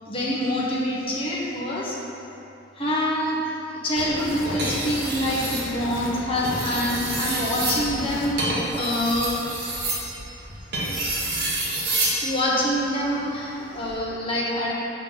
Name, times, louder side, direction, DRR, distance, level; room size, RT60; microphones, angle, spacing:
voice 1, 0.1-2.0 2.7-3.4 3.7-9.4 12.2-14.7, left 1 dB, 30° left, -5 dB, 1.2 m, -26 dB
sound 1, 4.0-8.3, left 2 dB, 85° left, 0.7 m, -35 dB
sound 2, 4.5-5.7 6.3-12.2 13.7-14.0, right 2 dB, 55° right, 1.5 m, -28 dB
6.9 x 5.7 x 4.0 m, 2.9 s
head